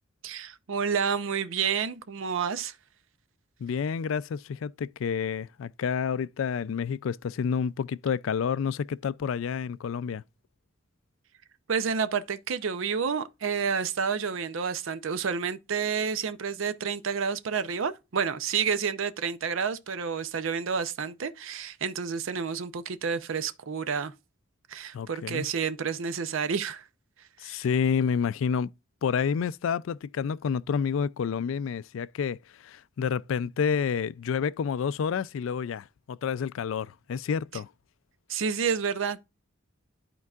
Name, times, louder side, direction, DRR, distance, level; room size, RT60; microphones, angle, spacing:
voice 1, 0.2-2.8 11.7-24.1 24.7-26.9 27.4-27.6 38.3-39.2, right 6 dB, 70° right, 0.6 m, -29 dB
voice 2, 3.6-10.2 24.9-25.5 27.4-28.7 29.0-37.7, left 6 dB, 70° left, 0.3 m, -29 dB
12.0 x 4.6 x 2.3 m
head